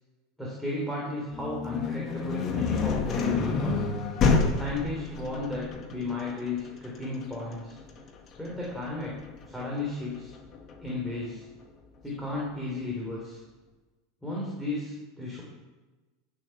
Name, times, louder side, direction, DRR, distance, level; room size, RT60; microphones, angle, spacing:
voice 1, 0.4-3.8 4.5-7.8 8.4-9.2 9.5-10.3 10.8-11.4 12.0-13.4 14.2-15.4, left 2 dB, ahead, -6 dB, 3.8 m, -34 dB
sound 1, 1.3-11.1, left 4 dB, 35° left, 1.8 m, -29 dB
16.5 x 7.9 x 6.1 m, 1.2 s
supercardioid pair, 150°, 0 cm